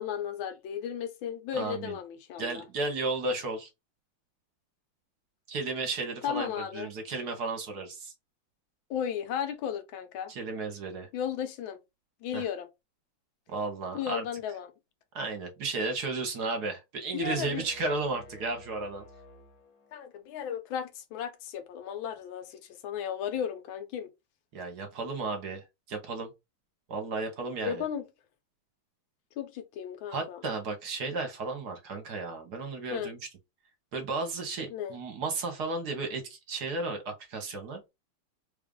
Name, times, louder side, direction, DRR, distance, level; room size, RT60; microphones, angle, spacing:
voice 1, 0.0-2.6 6.2-6.9 8.9-10.3 11.1-11.8 12.2-12.7 13.9-14.7 17.1-17.7 19.9-24.1 27.6-28.1 29.4-30.4 32.9-33.1 34.7-35.0, left 9 dB, 80° left, 1.5 m, -35 dB
voice 2, 1.5-2.0 2.4-3.7 5.5-8.1 10.3-11.1 12.3-12.4 13.5-14.2 15.1-19.0 24.5-26.3 26.9-27.8 30.1-33.2 33.9-37.8, right 3 dB, 60° right, 1.3 m, -34 dB
sound 1, 17.2-20.2, left 2 dB, 55° left, 1.2 m, -52 dB
3.4 x 2.4 x 3.6 m
omnidirectional pair, 2.2 m